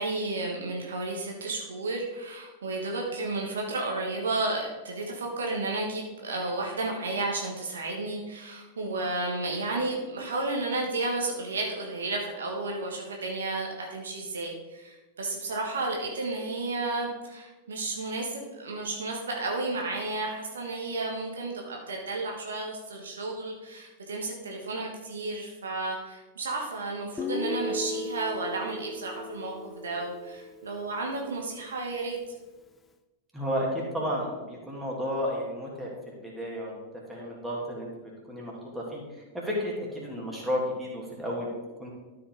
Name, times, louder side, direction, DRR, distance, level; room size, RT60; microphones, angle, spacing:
voice 1, 0.0-32.2, right 2 dB, 65° right, 0 dB, 1.4 m, -32 dB
Guitar, 27.2-31.1, left 2 dB, 15° left, 0.5 m, -36 dB
voice 2, 33.3-36.8 37.1-41.9, equal, 5° right, -4 dB, 2.6 m, -33 dB
13.0 x 5.1 x 3.9 m, 1.2 s
figure-of-eight pair, 90°, 0 cm